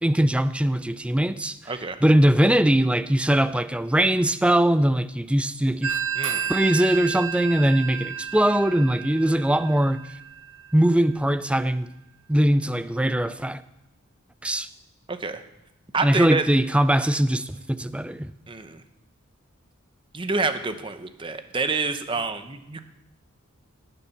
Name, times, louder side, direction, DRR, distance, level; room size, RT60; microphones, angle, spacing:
voice 1, 0.0-1.7 2.0-6.0 6.5-10.0 10.7-11.9 12.3-13.6 14.4-14.7 16.0-18.3, right 1 dB, 5° right, 13 dB, 0.4 m, -21 dB
voice 2, 1.7-2.0 6.2-6.5 15.1-15.4 15.9-16.4 18.5-18.8 20.1-22.8, right 3 dB, 25° right, 9 dB, 0.8 m, -28 dB
Telephone, 5.8-11.2, right 7 dB, 75° right, 1.2 m, -32 dB
17.0 x 7.0 x 5.8 m, 0.90 s
head